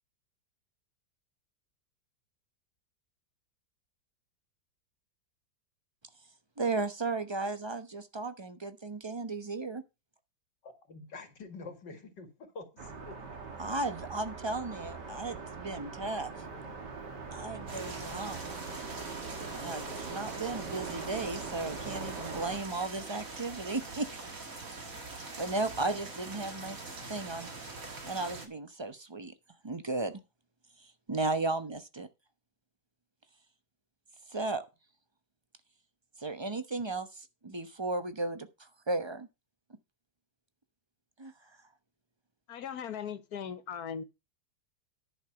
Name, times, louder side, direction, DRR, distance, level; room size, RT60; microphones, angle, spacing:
voice 1, 6.6-9.8 13.6-16.3 17.3-18.4 19.5-24.1 25.4-26.8 27.1-27.5 27.8-29.3 29.6-30.2 31.1-32.1 34.3-34.6 36.2-39.3 41.2-41.3, right 3 dB, 20° right, 0.8 m, -35 dB
voice 2, 10.6-13.2, left 3 dB, 85° left, 2.8 m, -47 dB
sound 1, 12.8-22.6, right 4 dB, 75° right, 2.8 m, -42 dB
sound 2, 17.7-28.5, right 3 dB, 50° right, 2.6 m, -43 dB
voice 3, 42.5-44.0, left 8 dB, 65° left, 1.5 m, -38 dB
11.0 x 5.9 x 5.8 m
omnidirectional pair, 1.9 m